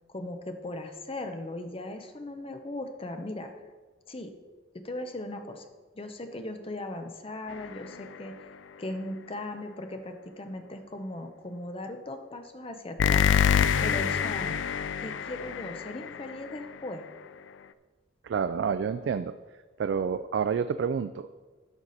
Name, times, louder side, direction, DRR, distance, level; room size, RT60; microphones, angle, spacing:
voice 1, 0.1-3.5 4.1-4.3 4.7-5.7 5.9-8.3 8.8-13.3 13.8-14.5 15.0-17.0, left 1 dB, 30° left, 6 dB, 0.8 m, -38 dB
sound 1, 7.5-8.2 13.0-16.7, left 7 dB, 90° left, 0.4 m, -27 dB
voice 2, 18.2-19.3 19.8-21.3, right 6 dB, 70° right, 11 dB, 0.3 m, -28 dB
11.5 x 5.9 x 4.1 m, 1.3 s
head